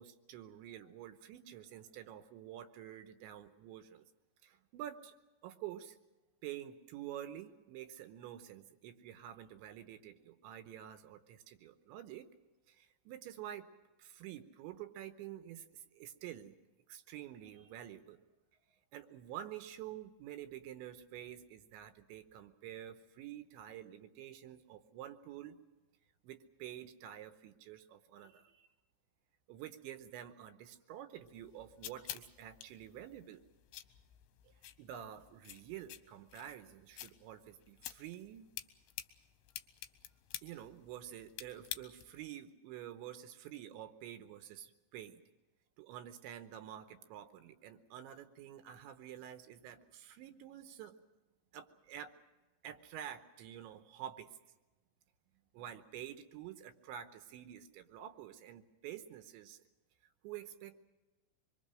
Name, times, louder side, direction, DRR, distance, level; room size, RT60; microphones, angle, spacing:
voice 1, 0.0-4.0 4.4-5.1 5.4-6.0 6.4-12.3 12.7-13.7 14.0-16.5 16.9-18.2 18.9-25.6 26.2-28.7 29.5-33.4 34.4-38.5 40.4-45.2 45.8-51.0 51.5-52.1 52.6-54.4 55.5-59.6 60.2-60.8, right 11 dB, 80° right, 9 dB, 3.1 m, -49 dB
sound 1, 31.2-42.3, left 13 dB, 75° left, 2.9 m, -50 dB
25.0 x 22.5 x 6.4 m, 1.1 s
omnidirectional pair, 5.6 m